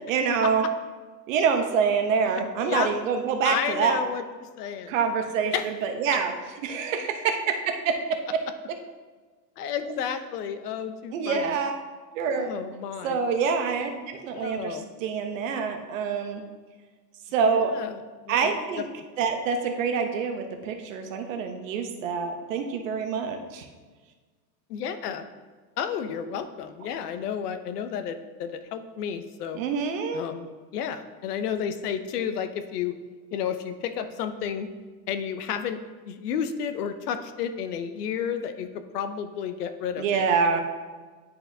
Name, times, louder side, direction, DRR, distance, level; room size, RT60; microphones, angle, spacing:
voice 1, 0.1-0.6 1.3-4.0 4.9-5.5 5.8-6.3 6.6-8.4 11.1-11.8 12.1-12.5 13.0-16.4 17.3-17.7 18.3-18.8 19.2-23.6 29.5-30.2 40.0-40.6, right 6 dB, 50° right, 5 dB, 0.8 m, -26 dB
voice 2, 2.3-2.9 3.4-4.2 4.6-4.9 5.5-5.7 9.6-11.6 12.3-13.2 14.3-14.9 17.4-18.0 18.3-18.5 18.8-18.9 24.7-25.3 25.8-29.6 30.1-30.5 30.7-33.0 33.3-34.7 35.1-35.8 36.1-40.6, left 8 dB, 70° left, 10 dB, 0.7 m, -31 dB
10.5 x 4.2 x 2.7 m, 1.4 s
supercardioid pair, 170°, 50 cm